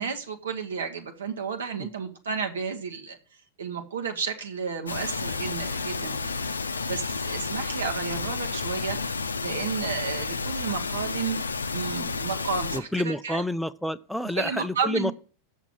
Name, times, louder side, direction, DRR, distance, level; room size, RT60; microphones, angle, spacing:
voice 1, 0.0-3.2 3.6-6.3 6.8-9.0 9.4-11.4 11.7-13.4 14.3-15.1, right 5 dB, 65° right, 5 dB, 1.1 m, -32 dB
sound 1, 4.9-12.8, left 4 dB, 75° left, 0.6 m, -31 dB
voice 2, 12.7-15.1, left 1 dB, ahead, 12 dB, 0.4 m, -29 dB
7.1 x 6.5 x 7.4 m, 0.43 s
figure-of-eight pair, 90°, 0 cm